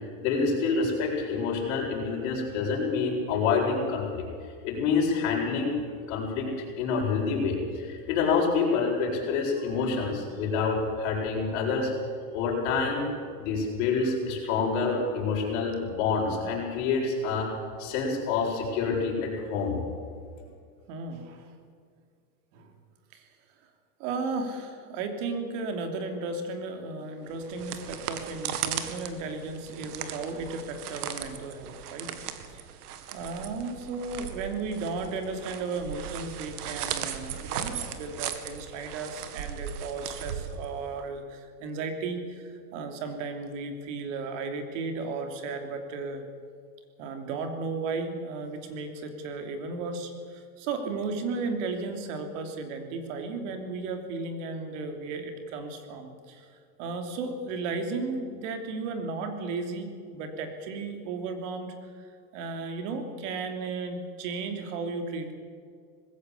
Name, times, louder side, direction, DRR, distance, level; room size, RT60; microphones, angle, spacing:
voice 1, 0.2-4.3 4.6-5.8 6.1-6.5 6.8-11.9 12.3-13.1 13.4-17.5 17.8-19.8, left 5 dB, 55° left, -2 dB, 7.7 m, -27 dB
voice 2, 20.9-21.5 22.5-22.7 23.1-23.2 24.0-32.1 32.5-32.6 33.1-46.2 47.0-56.5 56.8-65.3, right 4 dB, 50° right, 6 dB, 3.2 m, -34 dB
sound 1, 27.3-41.0, right 9 dB, 75° right, 2.1 m, -37 dB
20.5 x 16.0 x 8.5 m, 2.2 s
supercardioid pair, 160°, 47 cm